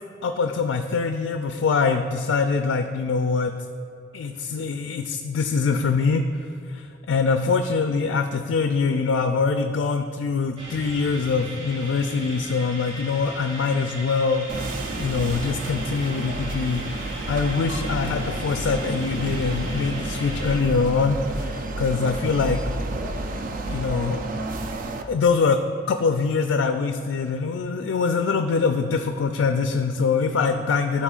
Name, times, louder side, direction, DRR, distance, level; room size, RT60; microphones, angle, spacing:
voice 1, 0.2-3.5 4.1-6.2 6.7-22.6 23.6-24.2 25.1-25.6 25.9-31.0, left 4 dB, 80° left, 6 dB, 0.3 m, -24 dB
sound 1, 10.6-20.6, right 1 dB, 75° right, 1.4 m, -38 dB
sound 2, 14.5-25.0, right 2 dB, 45° right, 0.4 m, -30 dB
12.5 x 4.3 x 2.4 m, 2.5 s
head